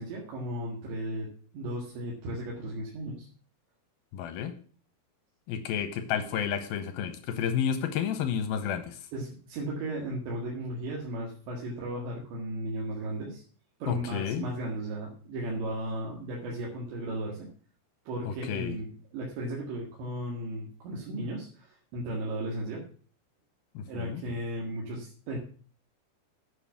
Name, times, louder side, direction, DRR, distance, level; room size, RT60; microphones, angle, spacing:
voice 1, 0.0-3.3 9.1-13.4 13.8-17.5 18.1-22.9 23.9-25.4, right 1 dB, 75° right, -3 dB, 4.2 m, -35 dB
voice 2, 4.1-4.5 5.5-9.0 13.9-14.5 18.3-18.8 23.7-24.2, left 8 dB, 75° left, 9 dB, 2.3 m, -31 dB
9.2 x 6.8 x 7.1 m, 0.43 s
omnidirectional pair, 5.2 m